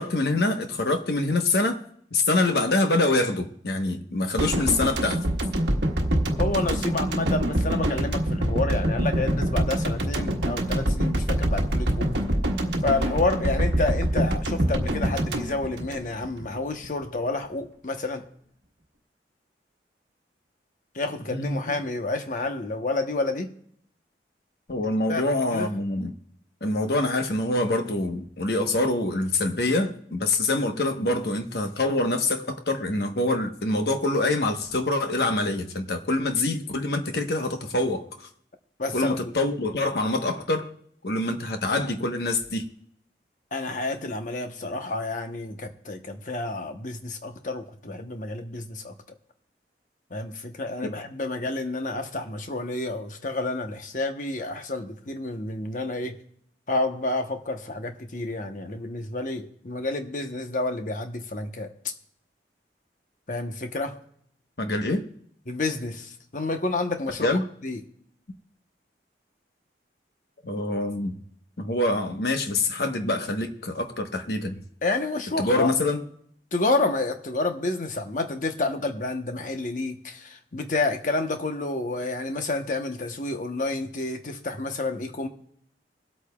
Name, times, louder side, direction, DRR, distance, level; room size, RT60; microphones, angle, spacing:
voice 1, 0.0-1.8 2.1-5.2 21.3-21.6 24.7-26.1 26.6-38.3 38.9-40.7 41.0-42.6 50.8-50.9 64.6-65.1 67.2-67.4 70.4-71.2 71.6-74.6 75.4-76.0, left 2 dB, 60° left, 1.1 m, -25 dB
sound 1, 4.4-16.6 16.8-17.0, right 1 dB, 70° right, 1.4 m, -25 dB
voice 2, 6.4-12.1 12.8-18.3 20.9-23.5 25.1-25.2 25.5-25.7 38.8-39.3 43.5-48.9 50.1-56.2 56.7-61.7 63.3-64.0 65.5-67.3 67.6-67.8 74.8-75.7 76.5-85.3, left 2 dB, 45° left, 1.0 m, -29 dB
25.0 x 8.4 x 2.3 m
head